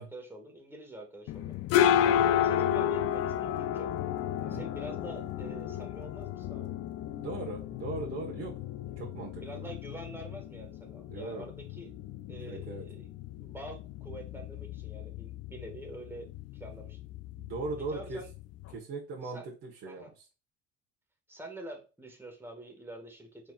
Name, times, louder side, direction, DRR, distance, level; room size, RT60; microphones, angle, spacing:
voice 1, 0.0-1.6 2.0-3.9 4.5-6.7 9.3-11.9 12.3-13.1 13.4-17.0 17.8-18.3 19.2-19.5 19.8-20.1 21.3-23.5, right 1 dB, 5° right, 1 dB, 1.9 m, -46 dB
sound 1, 1.3-18.8, left 10 dB, 50° left, 0.5 m, -32 dB
voice 2, 7.2-8.5 9.0-9.7 11.1-11.4 12.5-12.8 17.4-18.2 18.7-20.0, right 3 dB, 50° right, -3 dB, 1.6 m, -39 dB
4.4 x 4.1 x 2.5 m, 0.31 s
hypercardioid pair, 70°, 32 cm